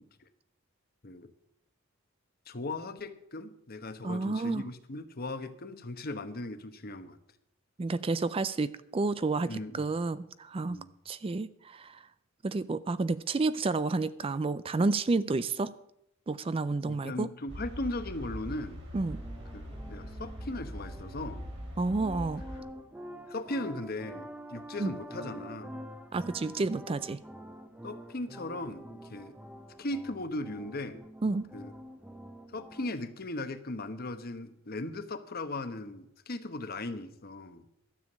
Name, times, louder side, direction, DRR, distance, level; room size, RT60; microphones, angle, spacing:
voice 1, 2.5-7.2 9.5-9.8 10.7-10.9 16.9-18.8 19.5-21.4 22.5-22.6 23.3-25.8 27.8-29.4 29.8-31.0 31.5-31.7 32.5-37.6, left 2 dB, 50° left, 10 dB, 1.0 m, -38 dB
voice 2, 4.0-4.6 7.8-10.8 11.1-12.0 12.4-15.7 16.3-17.3 18.9-19.2 21.8-22.4 24.8-24.9 26.1-27.2 31.2-31.4, right 3 dB, 25° right, 15 dB, 0.4 m, -30 dB
sound 1, 17.5-22.6, equal, 60° right, 3.4 m, -42 dB
sound 2, 19.0-32.9, equal, 5° right, 0.8 m, -47 dB
12.5 x 7.3 x 8.5 m, 0.78 s
head